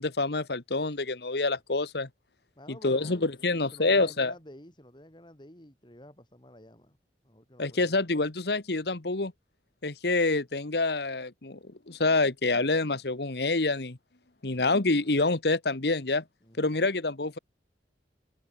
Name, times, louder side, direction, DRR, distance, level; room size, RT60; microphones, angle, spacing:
voice 1, 0.0-2.1 2.8-4.3 7.6-9.3 9.8-11.6 11.9-14.0 14.4-16.2 16.6-17.4, left 3 dB, 65° left, 1.4 m, -27 dB
voice 2, 2.5-7.0 7.2-8.0 16.4-16.8, left 1 dB, 25° left, 4.7 m, -51 dB
head